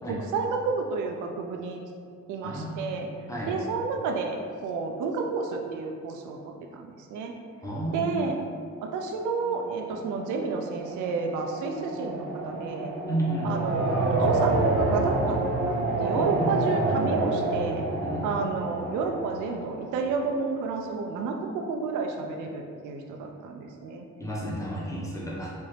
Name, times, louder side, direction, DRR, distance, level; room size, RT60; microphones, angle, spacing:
voice 1, 0.1-1.8 2.3-3.1 3.5-7.3 7.9-8.4 8.8-12.9 13.4-17.8 18.2-24.0, right 4 dB, 80° right, 3 dB, 0.5 m, -31 dB
voice 2, 2.4-2.8 3.3-3.5 7.6-8.1 13.1-13.5 16.1-16.5 18.0-18.3 24.2-25.5, right 1 dB, 10° left, -5 dB, 1.0 m, -31 dB
sound 1, 9.4-20.2, right 2 dB, 50° right, 0.8 m, -28 dB
4.3 x 2.6 x 3.3 m, 2.1 s
cardioid pair, 90°, 30 cm